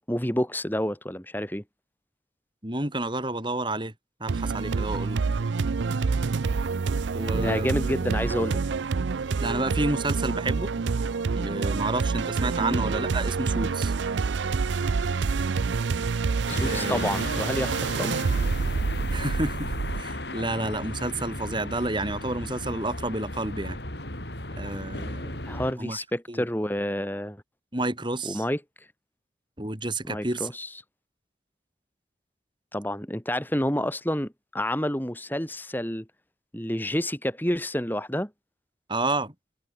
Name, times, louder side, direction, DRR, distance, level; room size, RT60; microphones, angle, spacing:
voice 1, 0.1-1.6 7.3-8.6 12.6-12.8 16.5-18.2 25.4-27.4 28.2-28.6 30.1-30.7 32.7-36.1 36.5-38.3, equal, 10° left, 3.3 m, -29 dB
voice 2, 2.6-3.9 4.2-5.2 7.1-7.7 9.4-10.7 11.4-13.9 16.6-17.0 19.1-23.8 24.6-25.4 25.8-26.5 27.7-28.4 29.6-30.5 38.9-39.3, right 2 dB, 25° right, 3.9 m, -30 dB
sound 1, 4.3-20.0, right 4 dB, 80° right, 0.5 m, -27 dB
sound 2, 16.5-25.7, left 1 dB, 65° left, 7.6 m, -35 dB
head